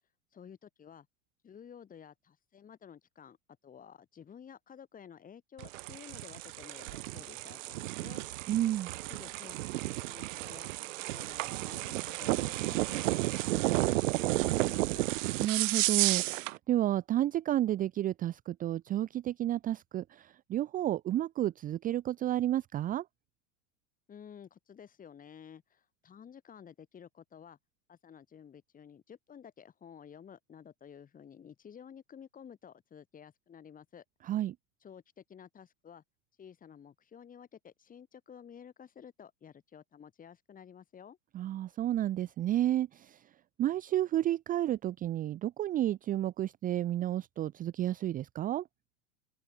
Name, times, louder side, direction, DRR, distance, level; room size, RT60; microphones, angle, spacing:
voice 1, 0.3-1.1 1.4-3.4 3.6-8.3 9.1-10.7 11.0-15.1 24.1-27.6 27.9-34.0 34.8-36.0 36.4-41.2, left 8 dB, 20° left, 5.8 m, -52 dB
sound 1, 5.6-16.6, right 19 dB, 70° right, 0.9 m, -32 dB
voice 2, 8.5-8.9 15.4-23.0 34.2-34.5 41.3-43.2 43.6-48.6, right 13 dB, 20° right, 0.7 m, -31 dB
open air
supercardioid pair, 140°, 39 cm